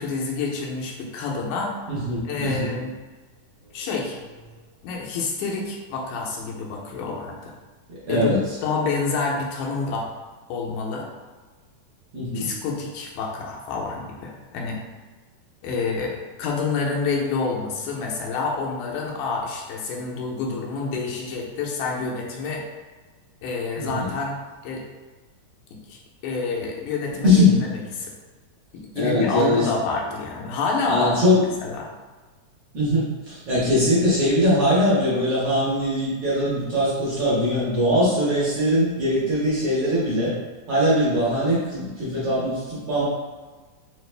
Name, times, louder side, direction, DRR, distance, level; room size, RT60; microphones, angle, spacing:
voice 1, 0.0-1.7 2.3-2.9 3.7-4.2 4.8-7.5 8.1-10.1 10.5-11.1 12.3-14.8 15.6-22.6 23.4-24.4 24.6-24.8 25.9-26.0 26.2-28.1 28.7-31.2 31.6-31.9, left 4 dB, 85° left, -2 dB, 2.1 m, -28 dB
voice 2, 2.0-2.7 8.1-8.4 12.1-12.5 23.8-24.1 27.2-27.5 29.0-29.7 30.9-31.4 32.7-40.3 40.7-43.0, left 1 dB, 60° right, -8 dB, 1.7 m, -21 dB
4.9 x 2.5 x 3.2 m, 1.3 s
omnidirectional pair, 3.5 m